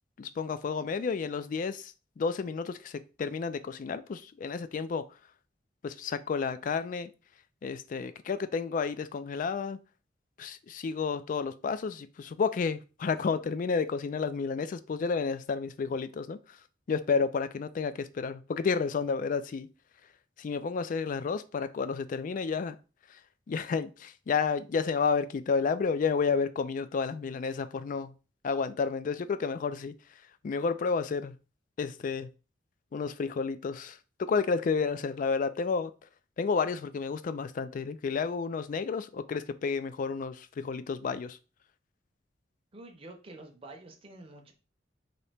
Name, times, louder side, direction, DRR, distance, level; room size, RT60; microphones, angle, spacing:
voice 1, 0.2-5.0 5.8-7.1 7.6-9.8 10.4-16.6 16.9-19.7 20.4-22.8 23.1-23.2 23.5-28.1 28.4-29.9 30.4-31.3 31.8-32.3 32.9-35.9 36.4-41.4, left 5 dB, 45° left, 0.3 m, -31 dB
voice 2, 42.7-44.5, right 2 dB, 30° right, 0.6 m, -48 dB
4.0 x 2.8 x 3.3 m
head